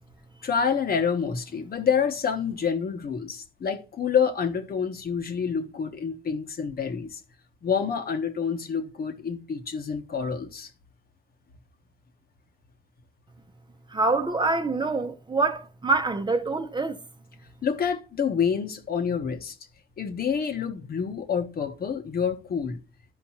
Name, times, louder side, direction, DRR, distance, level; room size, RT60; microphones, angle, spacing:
voice 1, 0.4-7.2 7.6-10.7 17.6-19.5 20.0-22.8, left 6 dB, 50° left, 1.3 m, -27 dB
voice 2, 13.9-17.0, right 3 dB, 25° right, 0.9 m, -25 dB
13.0 x 5.2 x 2.9 m
cardioid pair, 90°, 20 cm